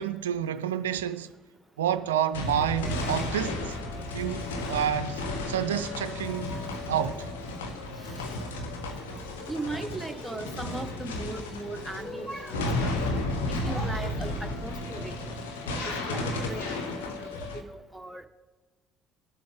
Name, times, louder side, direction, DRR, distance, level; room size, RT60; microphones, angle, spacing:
voice 1, 0.0-1.3 1.8-3.8 4.1-6.5 6.9-7.3, right 10 dB, 85° right, 0.3 m, -29 dB
sound 1, 2.3-17.6, left 2 dB, 85° left, 1.1 m, -33 dB
voice 2, 2.6-3.2 6.2-6.7 9.5-12.9 13.5-15.3 15.7-18.2, right 2 dB, 5° right, 1.3 m, -38 dB
20.0 x 7.6 x 3.7 m
hypercardioid pair, 55°, 0 cm